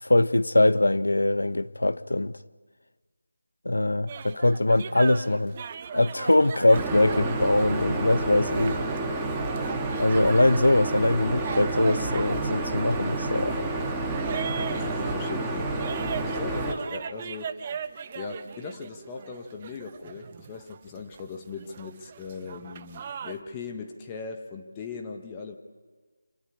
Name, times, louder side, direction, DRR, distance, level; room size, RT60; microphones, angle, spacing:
voice 1, 0.0-2.3 3.6-5.5 5.9-8.8 10.0-13.6, left 1 dB, 85° left, 0.9 m, -22 dB
sound 1, 4.1-23.4, right 7 dB, 25° right, 1.0 m, -39 dB
sound 2, 6.7-16.7, right 2 dB, 10° right, 2.0 m, -29 dB
voice 2, 14.8-15.8 16.2-17.5 18.1-25.6, left 5 dB, 15° left, 1.6 m, -39 dB
26.5 x 20.0 x 9.9 m
figure-of-eight pair, 165°, 0 cm